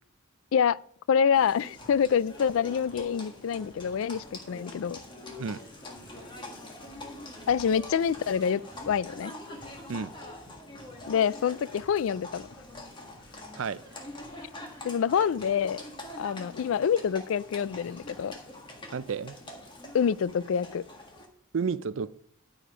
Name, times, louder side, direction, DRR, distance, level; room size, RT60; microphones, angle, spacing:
voice 1, 1.1-5.0 7.5-9.3 11.1-12.4 14.8-15.8 16.2-18.3 19.9-20.8, left 7 dB, 75° left, 0.3 m, -26 dB
Livestock farm animals working animals, 1.3-21.3, left 1 dB, 25° left, 1.6 m, -45 dB
sound 1, 1.7-6.4 6.8-18.6, equal, 55° left, 2.5 m, -58 dB
sound 2, 5.2-6.3 6.7-8.9 9.5-10.4 10.7-12.7 13.7-15.7 16.2-16.4, right 1 dB, 20° right, 2.0 m, -59 dB
voice 2, 18.9-19.4 21.5-22.1, right 5 dB, 70° right, 0.5 m, -31 dB
13.0 x 5.1 x 5.0 m
head